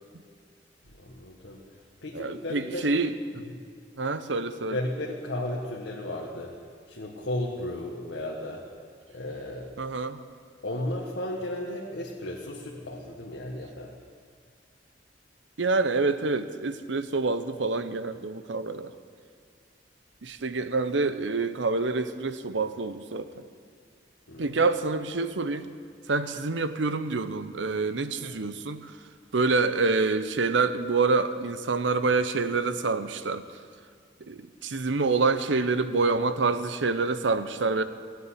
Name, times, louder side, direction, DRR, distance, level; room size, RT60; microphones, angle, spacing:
voice 1, 1.0-1.6 2.0-2.9 4.7-6.5 6.9-8.6 9.1-9.7 10.6-13.9 24.3-24.6 28.2-28.3, left 1 dB, 75° left, -2 dB, 1.6 m, -34 dB
voice 2, 2.1-3.4 4.0-4.8 9.8-10.2 15.6-18.9 20.2-23.5 24.4-25.7 26.1-29.0 29.3-33.4 34.2-37.8, right 3 dB, 90° right, 11 dB, 0.8 m, -27 dB
16.5 x 8.1 x 9.8 m, 2.1 s
head